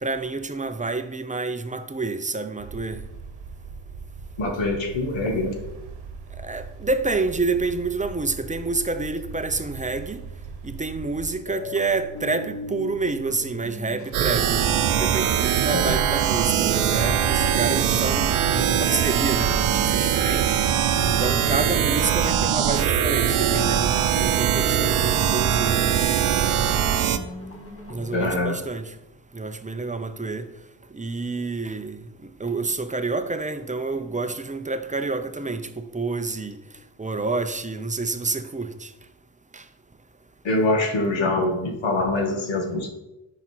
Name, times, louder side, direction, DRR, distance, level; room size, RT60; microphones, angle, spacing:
voice 1, 0.0-3.0 6.4-10.2 10.6-14.6 15.0-20.6 21.0-25.9 27.0-27.1 27.9-28.9 29.3-30.5 30.9-36.6 37.0-38.9 39.5-39.6, right 3 dB, 15° right, 0.6 m, -28 dB
sound 1, 2.6-11.4, right 5 dB, 50° right, 1.2 m, -40 dB
voice 2, 4.4-5.6 15.7-16.0 28.1-28.6 40.4-42.9, left 2 dB, 60° left, 2.0 m, -24 dB
sound 2, 11.4-28.4, left 2 dB, 25° left, 1.9 m, -38 dB
sound 3, 14.1-27.2, right 9 dB, 75° right, 0.8 m, -22 dB
10.0 x 5.9 x 4.6 m
cardioid pair, 115°, 50 cm